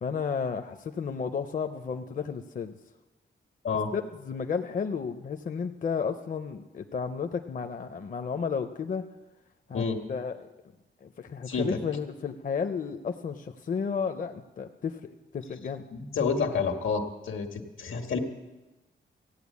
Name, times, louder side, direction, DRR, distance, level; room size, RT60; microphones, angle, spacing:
voice 1, 0.0-2.8 3.9-9.1 9.7-9.8 10.1-10.4 11.0-15.9, left 6 dB, 40° left, 6 dB, 0.6 m, -32 dB
voice 2, 11.5-11.8 15.9-18.2, left 5 dB, 85° left, 5 dB, 1.6 m, -29 dB
15.5 x 9.1 x 8.3 m, 1.1 s
wide cardioid pair, 180°, 20 cm